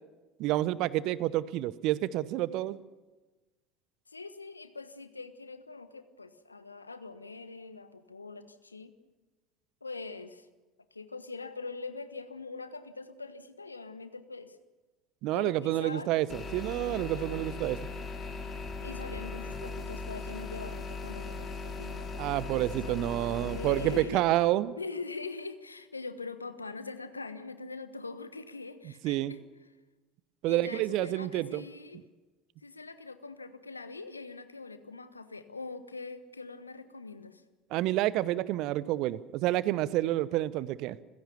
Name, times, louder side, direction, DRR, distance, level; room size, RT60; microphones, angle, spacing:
voice 1, 0.4-2.8 15.2-17.8 22.2-24.8 29.0-29.3 30.4-31.6 37.7-41.0, right 15 dB, 50° right, 19 dB, 0.9 m, -29 dB
voice 2, 2.4-2.7 4.1-8.9 9.8-10.5 10.9-14.6 15.3-16.1 16.9-17.3 18.7-22.5 22.8-23.1 23.5-24.2 24.8-29.4 30.4-32.0 32.6-37.4, left 3 dB, 85° left, 11 dB, 1.2 m, -43 dB
sound 1, 16.3-24.0, left 3 dB, 25° left, 5.6 m, -38 dB
28.5 x 16.5 x 7.0 m, 1.2 s
figure-of-eight pair, 70°, 0 cm